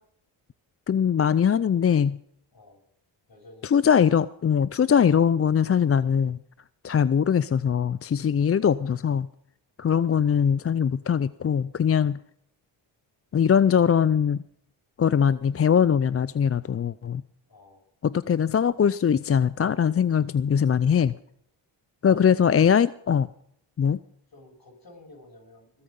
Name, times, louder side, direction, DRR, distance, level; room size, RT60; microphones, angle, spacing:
voice 1, 0.9-2.2 3.6-6.4 6.8-9.3 9.8-12.2 13.3-14.4 15.0-17.2 18.0-21.1 22.0-23.3 23.8-24.0, left 7 dB, 30° left, 17 dB, 0.5 m, -21 dB
voice 2, 3.3-3.8 17.5-17.8 22.0-22.4 24.3-25.8, left 2 dB, 45° left, 2 dB, 6.8 m, -50 dB
20.5 x 8.8 x 5.4 m, 0.70 s
supercardioid pair, 45°, 49 cm